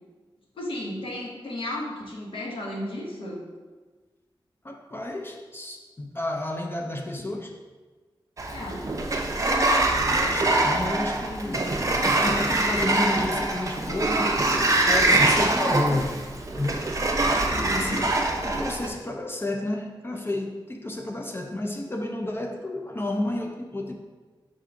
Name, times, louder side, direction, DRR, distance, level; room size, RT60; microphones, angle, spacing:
voice 1, 0.5-3.4 8.5-8.9 17.4-18.0, left 1 dB, 80° left, -3 dB, 0.9 m, -34 dB
voice 2, 4.6-7.6 10.1-11.7 12.2-14.4 14.9-16.3 16.6-16.9 17.4-18.1 18.4-24.0, left 1 dB, 25° left, 2 dB, 0.4 m, -31 dB
Sliding door, 8.4-18.9, right 2 dB, 40° right, 0.4 m, -24 dB
4.6 x 3.6 x 2.5 m, 1.3 s
wide cardioid pair, 80°, 9 cm